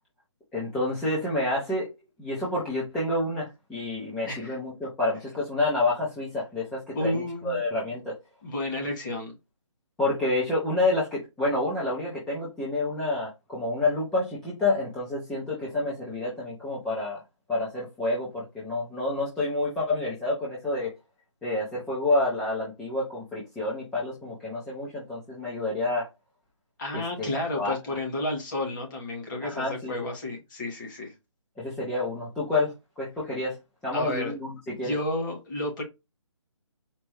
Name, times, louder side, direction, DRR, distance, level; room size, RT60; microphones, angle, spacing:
voice 1, 0.5-1.9 2.2-8.2 10.0-17.2 17.5-20.9 21.4-26.1 26.9-27.7 29.4-29.9 31.6-33.6 33.8-34.9, left 2 dB, ahead, 0.3 m, -28 dB
voice 2, 4.2-4.5 6.9-7.6 8.4-9.3 26.8-31.1 33.9-34.3 34.8-35.8, left 1 dB, 40° left, 2.2 m, -31 dB
4.4 x 2.6 x 3.0 m
figure-of-eight pair, 155°, 16 cm